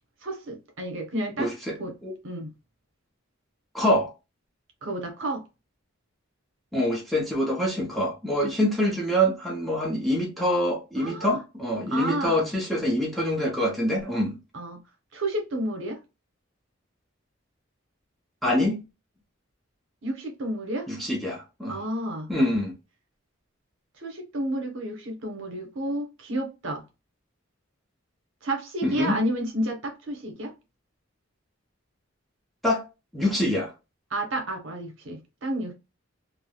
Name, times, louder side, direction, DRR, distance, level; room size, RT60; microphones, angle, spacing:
voice 1, 0.2-1.5 1.8-1.9 2.2-2.5 4.8-5.4 10.9-11.4 11.9-12.5 14.5-14.8 15.1-16.0 20.0-20.9 21.7-22.3 24.0-26.8 28.4-30.5 34.1-35.7, right 1 dB, 65° right, 0.9 m, -31 dB
voice 2, 1.4-1.8 2.0-2.2 3.7-4.1 6.7-14.4 18.4-18.8 20.9-21.8 22.3-22.7 28.8-29.2 32.6-32.9 33.1-33.7, equal, ahead, 0.6 m, -25 dB
3.3 x 2.1 x 2.2 m
head